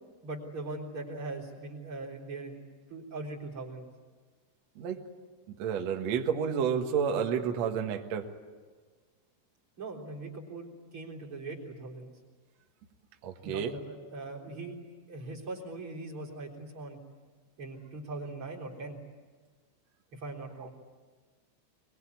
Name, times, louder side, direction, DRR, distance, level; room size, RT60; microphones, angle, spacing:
voice 1, 0.2-2.6 2.9-3.8 9.8-12.1 13.4-14.8 15.1-17.0 17.6-19.0 20.1-20.7, right 2 dB, 30° right, -2 dB, 3.9 m, -40 dB
voice 2, 5.5-8.2 13.2-13.7, right 7 dB, 70° right, 4 dB, 1.6 m, -30 dB
25.0 x 21.5 x 9.6 m, 1.5 s
omnidirectional pair, 5.6 m